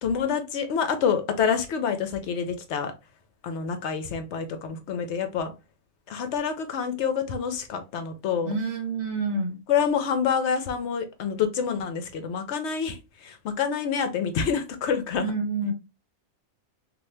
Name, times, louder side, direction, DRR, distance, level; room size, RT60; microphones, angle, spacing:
voice 1, 0.0-2.9 3.4-5.5 6.1-8.5 9.7-15.3, left 7 dB, 65° left, 0.8 m, -27 dB
voice 2, 8.4-9.6 15.2-15.7, right 3 dB, 60° right, 1.1 m, -28 dB
2.7 x 2.5 x 3.2 m
omnidirectional pair, 1.4 m